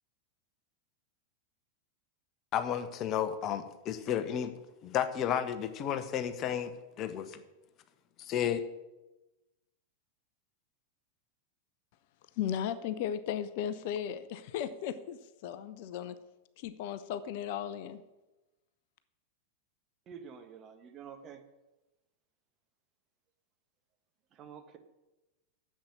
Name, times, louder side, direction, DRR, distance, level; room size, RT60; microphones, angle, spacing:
voice 1, 2.5-4.5 4.8-6.7 7.0-7.4 8.2-8.6, left 9 dB, 35° left, 1.0 m, -32 dB
voice 2, 12.4-16.1 16.6-18.0, left 9 dB, 50° left, 0.7 m, -36 dB
voice 3, 20.1-21.4 24.3-24.8, right 7 dB, 30° right, 1.4 m, -48 dB
10.5 x 7.5 x 8.7 m
figure-of-eight pair, 90°, 0 cm